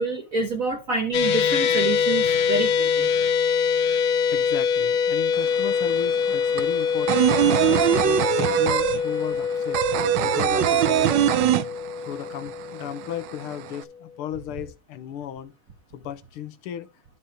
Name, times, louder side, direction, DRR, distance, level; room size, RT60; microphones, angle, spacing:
voice 1, 0.0-3.1, right 3 dB, 40° right, 1.7 m, -27 dB
sound 1, 1.1-13.5, left 7 dB, 65° left, 0.9 m, -24 dB
voice 2, 4.3-9.8 10.2-11.6 12.1-15.5 15.9-16.9, left 10 dB, 90° left, 1.8 m, -35 dB
sound 2, 5.3-5.4 5.7-12.3 12.5-12.6 13.0-13.8, right 12 dB, 70° right, 1.2 m, -21 dB
12.0 x 4.4 x 4.9 m
omnidirectional pair, 2.4 m